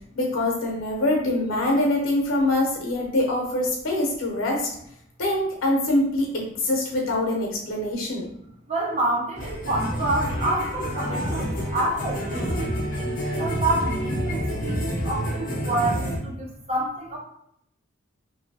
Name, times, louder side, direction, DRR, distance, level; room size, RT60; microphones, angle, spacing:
voice 1, 0.1-4.7 5.2-8.3, left 1 dB, 80° left, 0 dB, 0.9 m, -24 dB
voice 2, 8.7-17.2, right 2 dB, 30° right, -3 dB, 0.8 m, -28 dB
sound 1, 9.4-16.2, equal, 45° left, 0.9 m, -28 dB
2.9 x 2.6 x 2.7 m, 0.70 s
head